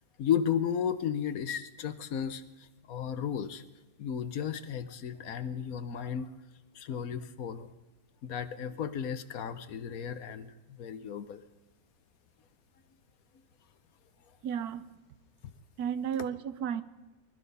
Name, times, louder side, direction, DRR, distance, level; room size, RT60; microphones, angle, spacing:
voice 1, 0.2-3.6 4.0-6.3 6.7-7.7 8.2-11.4, left 8 dB, 70° left, 13 dB, 1.3 m, -34 dB
voice 2, 14.4-14.9 15.8-16.8, right 8 dB, 80° right, 14 dB, 1.3 m, -33 dB
20.5 x 12.5 x 5.4 m, 1.2 s
omnidirectional pair, 1.6 m